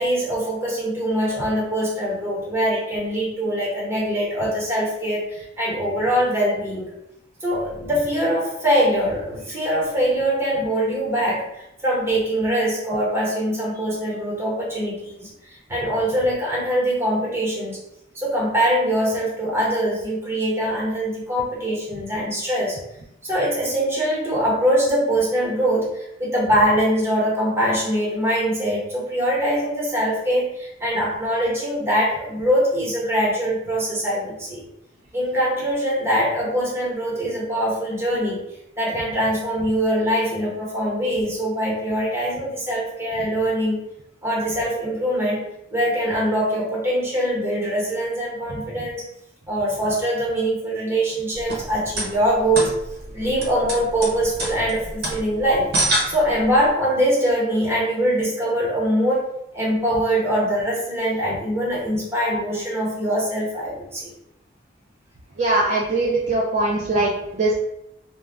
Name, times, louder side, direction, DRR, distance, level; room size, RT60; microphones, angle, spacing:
voice 1, 0.0-6.9 7.4-17.8 18.1-22.8 23.2-34.7 35.1-43.8 44.2-45.5 45.7-49.0 49.5-52.8 53.1-55.7 56.1-64.1, equal, 15° right, -6 dB, 1.0 m, -23 dB
sound 1, 51.3-56.7, right 1 dB, 55° right, 0.7 m, -28 dB
voice 2, 65.4-67.6, right 2 dB, 40° right, -3 dB, 0.3 m, -21 dB
2.3 x 2.0 x 3.1 m, 0.81 s
head